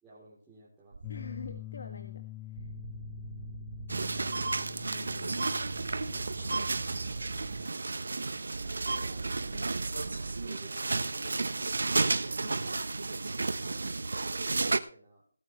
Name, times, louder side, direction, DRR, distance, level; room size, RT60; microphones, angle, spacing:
voice 1, 0.0-1.0 6.1-6.9 8.8-9.3 10.3-12.1 13.5-14.3 14.7-15.2, right 3 dB, 5° right, -11 dB, 3.6 m, -56 dB
sound 1, 0.9-1.6 2.6-4.7 5.6-7.6 8.5-10.5, right 4 dB, 50° right, 0.7 m, -42 dB
sound 2, 1.0-7.7, left 15 dB, 15° left, 0.5 m, -46 dB
voice 2, 1.1-2.7 4.9-5.4 9.5-9.8 12.4-12.7, left 4 dB, 50° left, 6 dB, 1.8 m, -46 dB
sound 3, 3.9-14.8, right 3 dB, 70° right, 1.1 m, -32 dB
18.0 x 9.0 x 3.3 m, 0.39 s
figure-of-eight pair, 175°, 0 cm